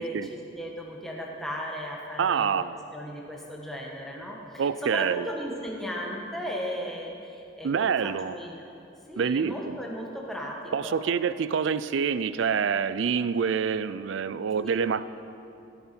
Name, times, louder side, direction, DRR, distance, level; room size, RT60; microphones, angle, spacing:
voice 1, 0.0-2.6 2.9-8.6 9.1-11.0 14.6-14.8, equal, ahead, -2 dB, 1.3 m, -36 dB
voice 2, 2.2-2.7 4.6-5.3 7.6-8.3 9.2-9.8 10.7-15.1, right 6 dB, 70° right, 15 dB, 0.4 m, -26 dB
15.5 x 10.0 x 4.4 m, 2.7 s
head